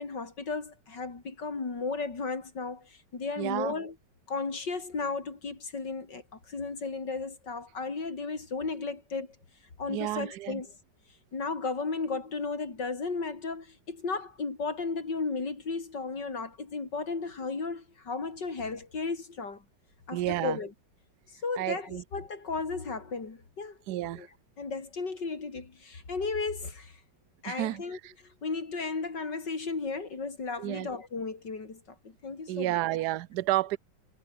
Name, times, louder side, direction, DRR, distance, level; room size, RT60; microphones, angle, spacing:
voice 1, 0.0-3.9 4.3-9.4 9.8-10.7 11.3-19.6 20.1-20.7 21.4-23.8 24.2-24.3 24.6-27.0 27.4-32.8, left 4 dB, 65° left, 4.4 m, -34 dB
voice 2, 3.4-3.7 9.9-10.6 20.1-20.6 21.6-22.0 23.9-24.3 27.5-28.1 30.6-30.9 32.5-33.8, right 16 dB, 65° right, 1.2 m, -31 dB
omnidirectional pair, 2.0 m